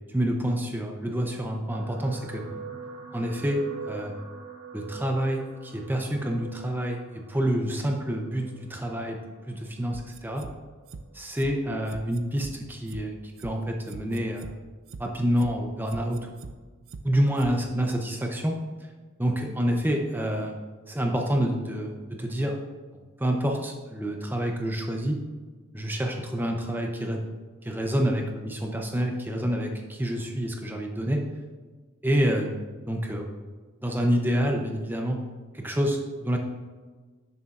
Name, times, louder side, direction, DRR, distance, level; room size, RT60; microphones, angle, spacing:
voice 1, 0.1-2.4 3.1-4.1 4.7-9.2 9.5-10.4 11.1-13.2 13.4-14.5 15.0-16.2 17.0-18.5 19.2-20.6 20.9-22.6 23.2-25.2 25.7-27.2 27.6-31.2 32.0-33.3 33.8-35.2 35.5-36.4, equal, 10° right, 2 dB, 0.6 m, -27 dB
sound 1, 1.7-10.1 10.9-11.1 11.4-11.5, right 5 dB, 90° right, 1.1 m, -44 dB
sound 2, 9.9-10.5 10.9-11.0 11.4-11.5 11.9-12.5 12.9-13.0 13.4-13.5 13.9-14.5 14.9-15.0 15.4-15.5 15.9-16.5 16.9-17.0 17.4-17.5 17.9-18.0, right 4 dB, 70° right, 0.5 m, -41 dB
10.5 x 6.9 x 2.5 m, 1.4 s
head